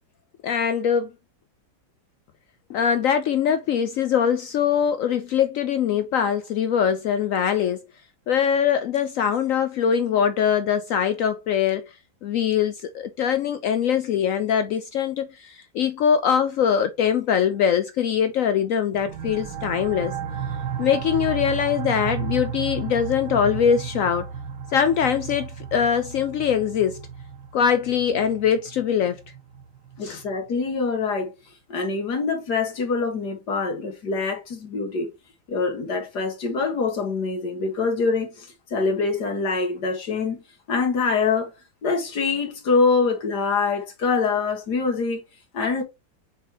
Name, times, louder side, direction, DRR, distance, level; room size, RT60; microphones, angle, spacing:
voice 1, 0.4-1.1 2.7-7.8 8.3-11.9 12.2-20.1 20.8-24.3 24.7-27.0 27.5-29.2 30.0-30.2, left 8 dB, 90° left, 0.7 m, -22 dB
sound 1, 18.9-30.3, right 7 dB, 85° right, 1.8 m, -33 dB
voice 2, 30.0-31.3 31.7-35.1 35.5-40.4 40.7-41.5 41.8-45.2 45.5-45.8, left 4 dB, 60° left, 2.3 m, -24 dB
6.7 x 4.8 x 3.0 m
omnidirectional pair, 2.0 m